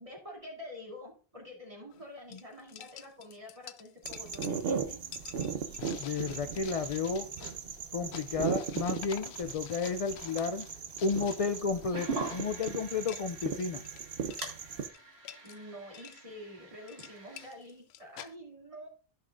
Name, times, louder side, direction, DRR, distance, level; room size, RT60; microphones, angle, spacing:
voice 1, 0.0-5.0 15.4-18.9, left 1 dB, 35° right, -2 dB, 2.9 m, -47 dB
sound 1, 1.9-2.0 2.3-14.0 14.2-14.5 14.9-15.6 15.9-16.2 16.7-18.3, left 11 dB, 85° left, 0.8 m, -49 dB
sound 2, 4.0-14.9, right 6 dB, 70° right, 1.0 m, -38 dB
voice 2, 5.5-7.3 7.9-10.7 11.0-13.8, left 5 dB, 50° left, 9 dB, 0.4 m, -32 dB
sound 3, 11.9-17.5, right 4 dB, 85° right, 2.0 m, -43 dB
14.0 x 5.7 x 2.5 m, 0.38 s
omnidirectional pair, 1.1 m